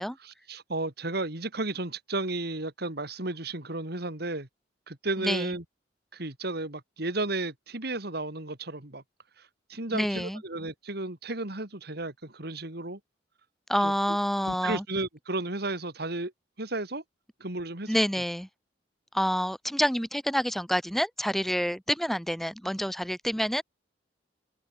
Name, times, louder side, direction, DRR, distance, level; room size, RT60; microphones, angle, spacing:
voice 1, 0.2-4.5 4.9-5.6 6.1-9.0 9.4-13.0 13.8-13.9 14.4-16.3 16.6-17.0 17.4-17.9, right 2 dB, 60° right, 3.1 m, -33 dB
voice 2, 5.2-5.5 9.9-10.4 13.7-14.8 17.9-18.5 19.1-23.6, equal, ahead, 6.4 m, -28 dB
head